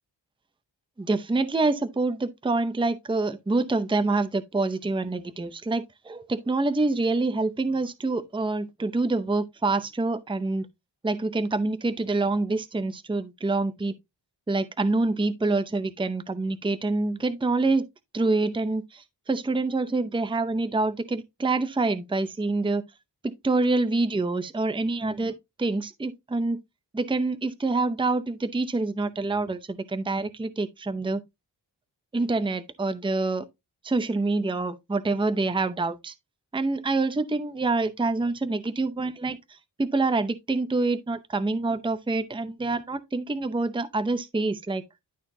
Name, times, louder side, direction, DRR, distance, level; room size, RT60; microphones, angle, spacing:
voice 1, 1.0-10.7 11.0-13.9 14.5-17.8 18.1-22.8 23.2-25.3 25.6-26.6 26.9-31.2 32.1-33.4 33.8-36.1 36.5-39.4 39.8-44.8, right 3 dB, 10° right, 0.6 m, -26 dB
12.0 x 4.3 x 2.6 m
wide cardioid pair, 120°, 44 cm